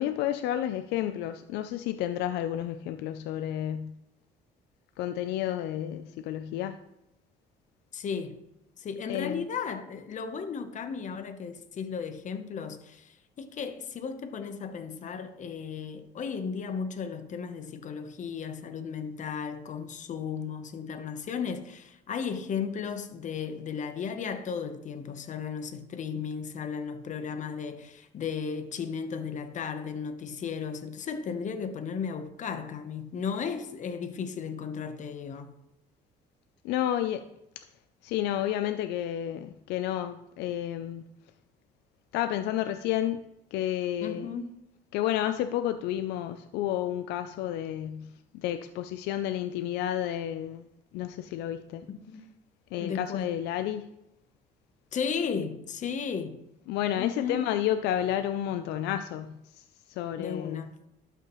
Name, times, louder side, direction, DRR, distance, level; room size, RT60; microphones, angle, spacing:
voice 1, 0.0-3.9 5.0-6.8 9.1-9.4 36.6-37.2 38.0-41.0 42.1-43.2 43.5-44.3 44.9-50.6 50.9-51.8 52.7-53.9 56.7-60.6, left 11 dB, 85° left, 0.4 m, -31 dB
voice 2, 7.9-8.4 8.8-35.5 44.0-44.6 51.9-52.2 52.8-53.3 54.9-56.4 57.0-57.6 60.2-60.8, left 6 dB, 45° left, 0.9 m, -35 dB
12.0 x 5.7 x 3.1 m
cardioid pair, 110°, 17 cm